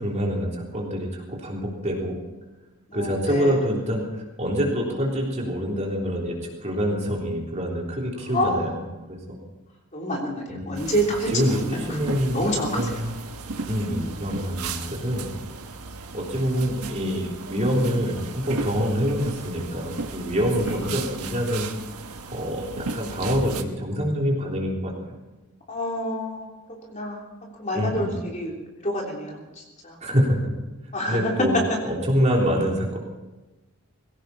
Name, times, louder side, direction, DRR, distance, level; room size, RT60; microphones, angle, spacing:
voice 1, 0.0-2.2 2.9-8.8 9.1-9.4 10.5-10.9 11.3-12.5 12.7-13.1 13.7-15.3 16.1-21.7 22.3-24.9 27.7-28.1 30.0-30.4 31.1-31.5 31.9-33.0, equal, 30° right, -2 dB, 3.5 m, -26 dB
voice 2, 2.9-3.6 8.3-8.6 9.9-11.6 11.9-12.0 12.3-13.1 14.0-14.1 25.7-26.5 26.9-27.3 27.6-30.0 30.9-31.6, equal, 35° left, -1 dB, 3.4 m, -27 dB
sound 1, 10.7-23.6, right 3 dB, 85° right, 1.4 m, -35 dB
20.5 x 16.5 x 4.2 m, 1.1 s
head